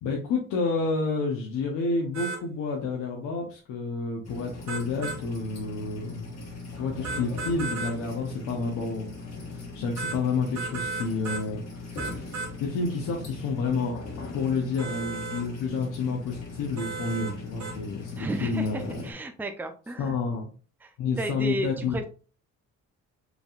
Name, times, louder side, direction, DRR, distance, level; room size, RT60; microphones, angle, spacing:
voice 1, 0.0-6.4 6.7-14.0 14.3-19.0 20.0-20.5 21.0-22.1, left 4 dB, 85° left, -1 dB, 0.9 m, -30 dB
sound 1, 2.1-2.4 4.7-5.2 7.0-8.0 10.0-10.2 10.6-11.5 12.0-12.5 14.8-15.4 16.8-17.3 17.6-17.8, right 4 dB, 65° right, 1.6 m, -34 dB
sound 2, 4.2-19.1, left 3 dB, 60° left, 1.6 m, -40 dB
voice 2, 18.2-20.2 20.8-22.1, right 2 dB, 5° right, 6 dB, 0.5 m, -33 dB
5.0 x 3.3 x 2.4 m, 0.38 s
cardioid pair, 90°, 30 cm